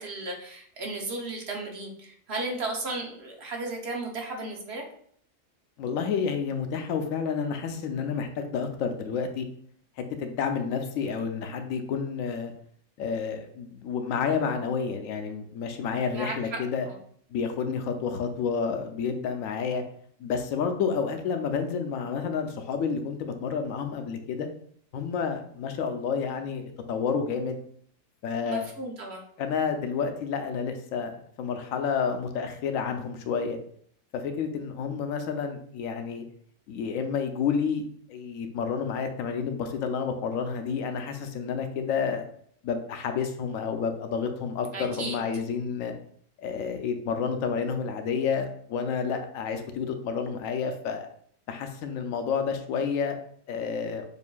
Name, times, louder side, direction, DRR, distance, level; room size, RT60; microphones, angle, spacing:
voice 1, 0.0-4.8 16.1-16.6 28.5-29.2 44.7-45.2, right 2 dB, 60° right, 1 dB, 0.9 m, -35 dB
voice 2, 5.8-9.5 10.0-12.5 13.0-16.9 17.3-19.8 20.2-24.5 24.9-27.6 28.2-28.7 29.4-33.6 34.1-36.2 36.7-37.8 38.1-42.2 42.6-45.9 46.4-51.1 51.5-53.2 53.5-54.0, left 6 dB, 90° left, 6 dB, 1.0 m, -30 dB
6.9 x 2.6 x 2.2 m, 0.62 s
omnidirectional pair, 1.4 m